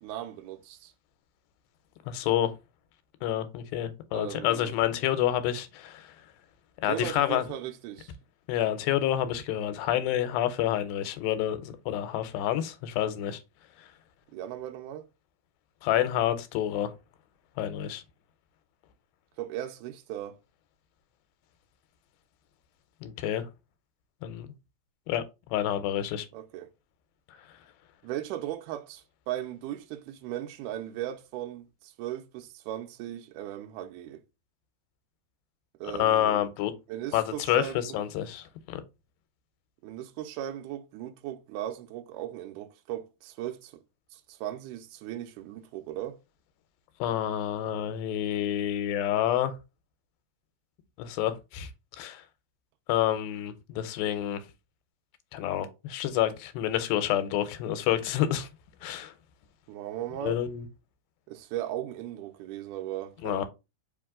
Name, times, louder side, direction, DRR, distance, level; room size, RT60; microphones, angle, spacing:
voice 1, 0.0-0.9 4.1-4.8 6.9-8.1 14.3-15.1 19.4-20.4 26.3-26.7 28.0-34.2 35.8-36.5 36.9-38.0 39.8-43.8 44.1-46.2 59.7-60.4 61.3-63.5, right 12 dB, 80° right, 2.0 m, -37 dB
voice 2, 2.1-2.5 3.2-6.1 6.8-7.4 8.5-13.4 15.8-16.9 17.6-18.0 23.0-23.5 24.2-24.5 25.1-25.2 25.5-26.3 36.0-36.7 37.1-38.8 47.0-49.5 51.0-51.7 52.0-52.2 52.9-54.4 55.3-58.5 58.8-59.1 60.2-60.7 63.2-63.5, left 11 dB, 85° left, 2.4 m, -28 dB
5.2 x 2.8 x 3.6 m
omnidirectional pair, 4.1 m